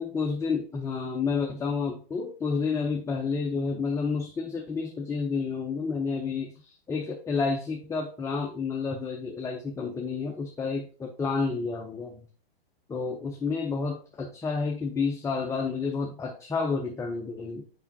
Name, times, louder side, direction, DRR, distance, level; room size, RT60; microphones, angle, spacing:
voice 1, 0.0-12.3 12.9-17.6, left 4 dB, 10° left, 1 dB, 0.6 m, -30 dB
6.9 x 5.5 x 2.7 m, 0.39 s
hypercardioid pair, 115°, 30 cm